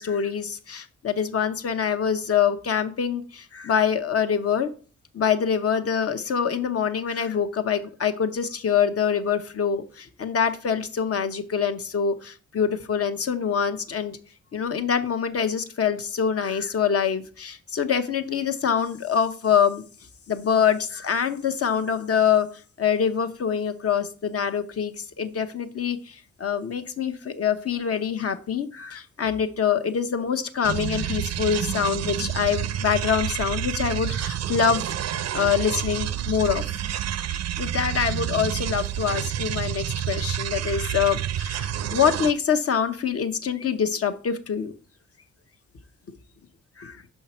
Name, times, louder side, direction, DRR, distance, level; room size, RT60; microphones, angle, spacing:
voice 1, 0.0-4.7 5.1-14.2 14.5-19.8 20.3-22.5 22.8-34.9 35.3-36.6 37.2-44.7 46.8-47.0, left 7 dB, 55° left, 8 dB, 0.9 m, -25 dB
sound 1, 30.6-42.3, right 11 dB, 65° right, 0.5 m, -29 dB
5.8 x 5.6 x 4.3 m, 0.40 s
cardioid pair, 60°, 29 cm